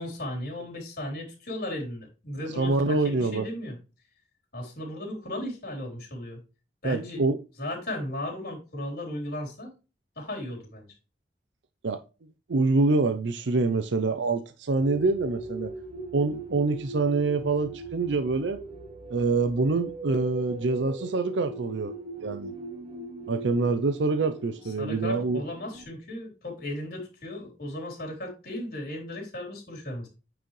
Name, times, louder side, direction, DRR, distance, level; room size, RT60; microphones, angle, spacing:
voice 1, 0.0-3.8 4.5-6.4 6.8-7.2 7.6-9.7 10.2-10.9 24.6-30.1, left 1 dB, 55° left, 3.6 m, -36 dB
voice 2, 2.6-3.5 6.8-7.4 11.8-12.0 12.5-15.7 16.1-18.6 19.1-21.9 22.2-22.5 23.3-25.4, right 3 dB, 85° right, 0.6 m, -25 dB
sound 1, 14.8-25.8, right 3 dB, 30° right, 1.0 m, -40 dB
9.0 x 4.8 x 3.2 m
head